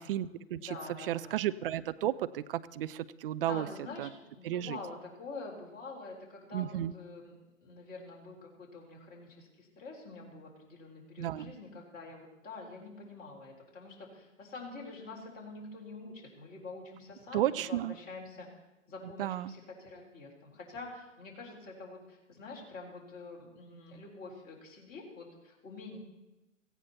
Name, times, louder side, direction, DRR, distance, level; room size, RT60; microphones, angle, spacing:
voice 1, 0.0-0.7 1.1-3.7 4.0-4.1 4.4-4.8 6.5-6.9 11.2-11.5 17.3-17.9 19.2-19.5, right 12 dB, 45° right, 15 dB, 0.7 m, -33 dB
voice 2, 0.6-1.5 3.4-7.3 7.6-18.5 18.9-26.0, left 3 dB, 25° left, -2 dB, 4.1 m, -46 dB
17.5 x 15.5 x 4.3 m, 1.0 s
hypercardioid pair, 120°, 39 cm